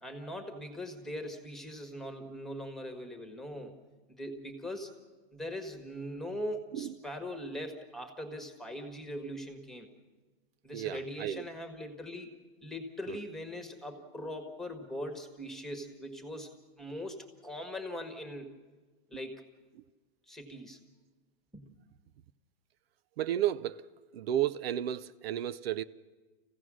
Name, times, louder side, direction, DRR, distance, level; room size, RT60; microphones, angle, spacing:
voice 1, 0.0-3.8 4.1-4.9 5.3-9.9 10.6-12.3 12.6-18.5 19.1-19.4 20.3-20.8 21.5-21.7, equal, ahead, 1.5 m, -41 dB
voice 2, 10.7-11.4 13.1-13.2 23.2-23.8 24.1-25.8, right 11 dB, 85° right, 0.7 m, -32 dB
26.5 x 16.0 x 6.2 m
supercardioid pair, 155°, 29 cm